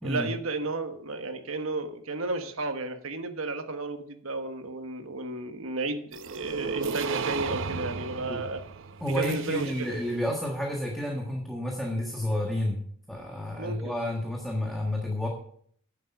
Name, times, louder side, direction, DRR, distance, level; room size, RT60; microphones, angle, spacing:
voice 1, 0.0-8.6 9.1-10.0 13.6-13.9, right 2 dB, 80° right, 7 dB, 1.3 m, -33 dB
sound 1, 6.1-10.1, right 5 dB, 65° right, 0.7 m, -34 dB
voice 2, 9.0-15.3, left 1 dB, ahead, -1 dB, 1.5 m, -30 dB
10.5 x 7.4 x 6.0 m, 0.62 s
head